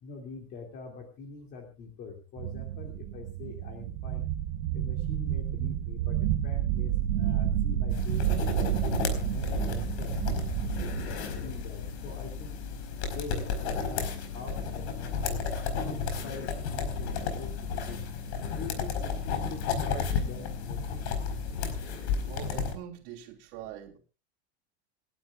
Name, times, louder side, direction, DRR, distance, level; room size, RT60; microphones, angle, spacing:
voice 1, 0.0-4.3 4.7-6.2 6.4-8.7 9.1-10.2 10.6-12.6 13.1-15.5 15.9-18.0 18.5-21.2, left 4 dB, 30° left, 2.7 m, -44 dB
sound 1, 2.4-11.1, right 11 dB, 75° right, 1.8 m, -30 dB
sound 2, 7.9-22.7, left 5 dB, 80° left, 4.7 m, -33 dB
voice 2, 21.7-24.0, right 11 dB, 50° right, 3.2 m, -44 dB
28.5 x 12.0 x 2.5 m
supercardioid pair, 175°, 33 cm